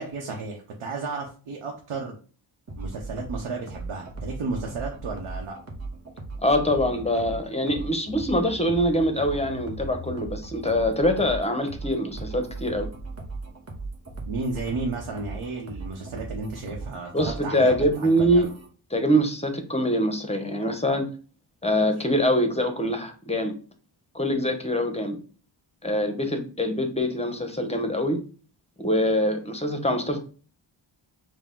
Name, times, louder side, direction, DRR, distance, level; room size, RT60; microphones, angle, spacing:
voice 1, 0.0-2.2 2.8-5.6 14.3-18.5, right 3 dB, 75° right, 0 dB, 0.9 m, -33 dB
sound 1, 2.7-18.7, right 3 dB, 30° right, 1.2 m, -38 dB
voice 2, 6.4-12.9 17.1-18.5 18.9-21.1 21.6-23.5 24.1-25.2 25.8-28.2 28.8-30.2, equal, 15° left, 6 dB, 0.8 m, -24 dB
4.6 x 2.2 x 3.7 m, 0.39 s
cardioid pair, 60°, 50 cm